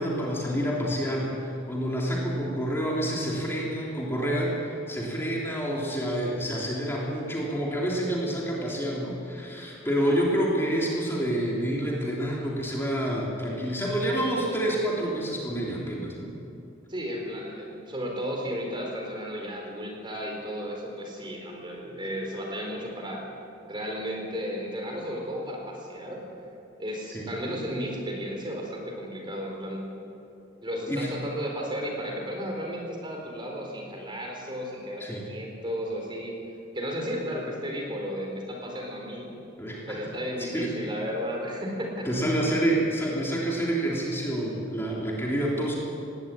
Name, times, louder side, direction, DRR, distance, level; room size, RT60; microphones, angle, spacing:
voice 1, 0.0-16.3 27.1-27.3 30.9-31.1 35.0-35.2 39.6-40.0 40.4-40.7 42.0-45.8, right 1 dB, 10° left, -4 dB, 3.3 m, -28 dB
voice 2, 16.9-23.3 23.6-26.2 26.8-29.9 30.6-36.4 36.7-39.3 39.9-42.1, equal, 25° right, 0 dB, 4.3 m, -34 dB
20.0 x 17.0 x 8.9 m, 2.8 s
head